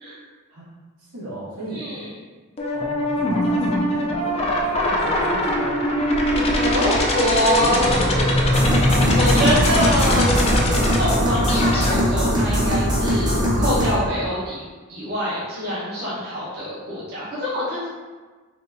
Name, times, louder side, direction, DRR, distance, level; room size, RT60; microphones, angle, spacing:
voice 1, 1.0-1.9 2.7-6.1 7.5-8.7, right 1 dB, 75° right, -7 dB, 1.2 m, -34 dB
voice 2, 1.7-2.1 6.5-10.3 11.0-13.3 13.6-14.6 14.9-17.9, equal, 50° right, -9 dB, 1.0 m, -25 dB
sound 1, 2.6-11.9, left 1 dB, 30° left, 0.5 m, -21 dB
sound 2, 8.5-14.0, equal, 20° right, 0.8 m, -21 dB
4.0 x 2.5 x 3.4 m, 1.3 s
head